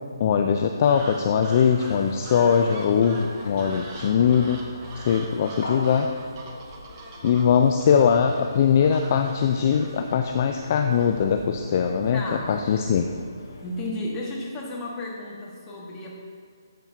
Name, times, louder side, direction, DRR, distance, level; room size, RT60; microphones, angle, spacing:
voice 1, 0.2-4.6 5.0-6.1 7.2-12.2 12.5-13.0, left 7 dB, 40° left, 5 dB, 0.4 m, -21 dB
sound 1, 0.9-11.6, right 3 dB, 30° right, 1.1 m, -43 dB
sound 2, 1.6-13.9, left 2 dB, 60° left, 1.3 m, -42 dB
voice 2, 12.1-12.5 13.6-16.1, left 1 dB, 15° left, -3 dB, 1.5 m, -33 dB
12.5 x 7.3 x 2.7 m, 2.2 s
hypercardioid pair, 155°, 2 cm